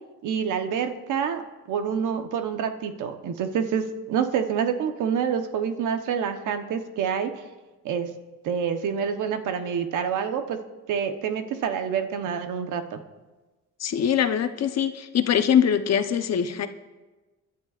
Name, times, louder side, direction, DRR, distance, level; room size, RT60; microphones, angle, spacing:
voice 1, 0.2-1.4 1.7-7.3 7.8-8.1 8.4-10.6 10.9-13.0, right 7 dB, 85° right, 7 dB, 1.1 m, -27 dB
voice 2, 13.8-16.7, left 8 dB, 60° left, 9 dB, 0.9 m, -23 dB
25.5 x 11.5 x 2.5 m, 1.2 s
cardioid pair, 90°, 30 cm